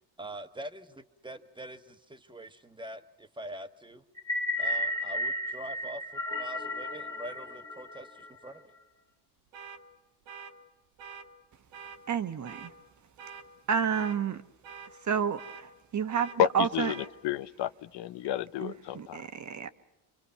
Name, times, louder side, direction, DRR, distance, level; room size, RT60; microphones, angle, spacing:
voice 1, 0.2-1.8 2.1-4.0 4.6-8.7, right 1 dB, 10° right, 1.3 m, -44 dB
sound 1, 4.2-8.5, left 1 dB, 10° left, 1.6 m, -33 dB
sound 2, 9.5-9.8 10.3-10.5 11.0-11.3 11.7-12.0 12.4-12.7 13.2-13.4 13.9-14.2 14.6-14.9 15.4-15.6 16.1-16.4 16.8-17.1, right 6 dB, 80° right, 1.7 m, -45 dB
voice 2, 12.1-12.7 13.7-14.4 15.0-16.9 18.6-19.7, right 7 dB, 40° right, 1.2 m, -30 dB
voice 3, 16.4-19.2, left 12 dB, 65° left, 0.8 m, -31 dB
28.0 x 24.0 x 5.8 m
supercardioid pair, 85°, 44 cm